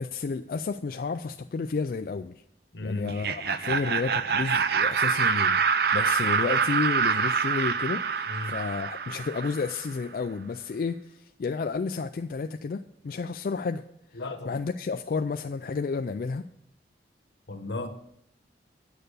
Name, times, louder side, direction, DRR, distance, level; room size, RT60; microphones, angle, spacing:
voice 1, 0.0-2.3 2.8-5.6 5.9-13.8 14.5-16.5, left 4 dB, 50° left, 0.3 m, -31 dB
voice 2, 2.7-3.1 8.3-8.6 14.1-14.6 17.5-17.9, left 2 dB, 80° left, 1.1 m, -35 dB
Laughter, 3.0-9.8, right 6 dB, 60° right, 0.5 m, -26 dB
9.0 x 6.6 x 6.7 m
head